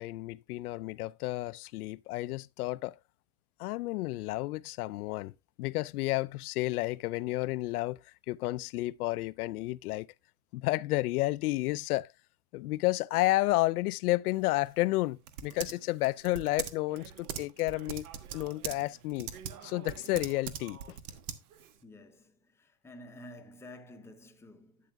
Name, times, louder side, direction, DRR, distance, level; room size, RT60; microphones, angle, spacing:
voice 1, 0.0-3.0 3.6-5.3 5.6-8.0 8.3-10.1 10.5-12.1 12.5-18.1 18.3-19.3 19.6-21.0, left 19 dB, 80° left, 0.6 m, -31 dB
Typing, 14.3-21.8, right 8 dB, 75° right, 1.4 m, -43 dB
voice 2, 21.8-24.9, left 1 dB, 5° left, 0.7 m, -51 dB
12.0 x 8.4 x 2.2 m
supercardioid pair, 155°, 44 cm